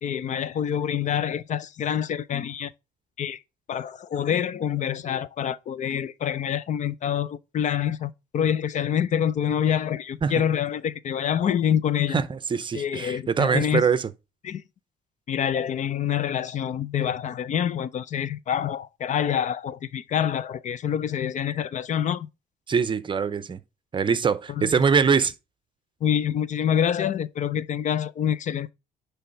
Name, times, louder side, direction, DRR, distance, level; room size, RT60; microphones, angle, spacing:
voice 1, 0.0-2.7 3.2-3.4 3.7-12.2 12.7-13.8 14.4-14.6 15.3-22.3 24.6-24.7 26.0-28.7, left 9 dB, 45° left, 0.5 m, -26 dB
voice 2, 12.1-14.1 22.7-23.6 23.9-25.3, right 6 dB, 30° right, 0.7 m, -23 dB
10.0 x 3.4 x 5.3 m
cardioid pair, 110°, 17 cm